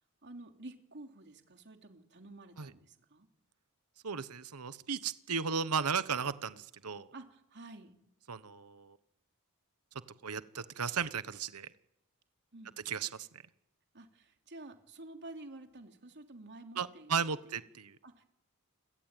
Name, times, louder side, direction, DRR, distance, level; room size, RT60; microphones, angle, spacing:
voice 1, 0.2-3.3 7.1-8.0 12.5-12.8 13.9-17.6 18.0-18.3, right 2 dB, 50° right, 5 dB, 3.1 m, -50 dB
voice 2, 4.0-7.1 8.3-9.0 10.2-11.7 12.8-13.3 16.8-18.0, right 6 dB, 90° right, 14 dB, 1.1 m, -35 dB
29.0 x 22.5 x 9.1 m, 0.85 s
head